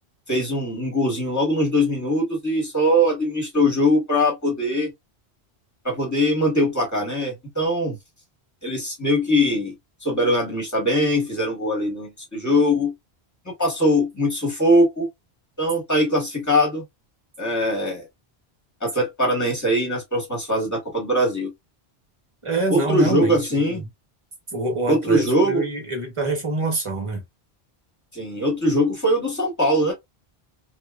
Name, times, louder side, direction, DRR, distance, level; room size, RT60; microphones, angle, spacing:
voice 1, 0.3-4.9 5.8-8.0 8.6-9.7 10.0-12.9 13.4-15.1 15.6-16.8 17.4-18.1 18.8-21.5 22.7-23.8 24.9-25.7 28.1-29.9, equal, 15° left, 1.2 m, -21 dB
voice 2, 22.4-23.8 24.5-27.2, right 2 dB, 30° right, 1.0 m, -26 dB
2.9 x 2.2 x 2.3 m
omnidirectional pair, 1.1 m